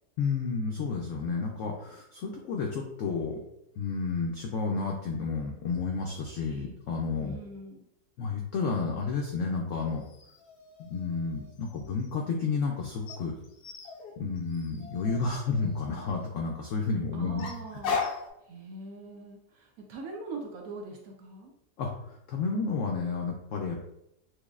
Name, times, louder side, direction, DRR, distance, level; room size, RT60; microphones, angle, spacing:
voice 1, 0.2-3.4 3.8-7.4 8.2-10.0 10.8-13.3 14.2-17.5 21.8-21.9 22.3-23.7, left 4 dB, 90° left, 0 dB, 0.6 m, -31 dB
voice 2, 7.2-7.8 17.1-18.0 18.5-21.5, right 2 dB, 70° right, 1 dB, 0.9 m, -42 dB
sound 1, 10.0-12.1 13.1-16.3 17.4-18.3, left 5 dB, 75° left, 1.2 m, -38 dB
6.0 x 2.1 x 2.4 m, 0.80 s
omnidirectional pair, 1.9 m